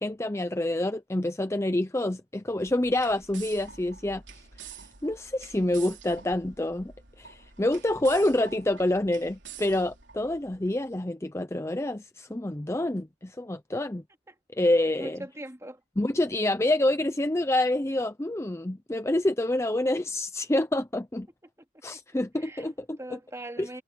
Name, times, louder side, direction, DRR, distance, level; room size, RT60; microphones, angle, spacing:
voice 1, 0.0-4.2 5.0-6.9 7.2-14.0 14.5-15.2 16.0-21.3 21.8-23.2 23.6-23.7, left 1 dB, 15° left, 0.6 m, -27 dB
sound 1, 2.5-10.7, right 7 dB, 75° right, 3.7 m, -48 dB
voice 2, 15.0-15.8 22.4-22.7 23.0-23.8, right 1 dB, 15° right, 2.4 m, -41 dB
head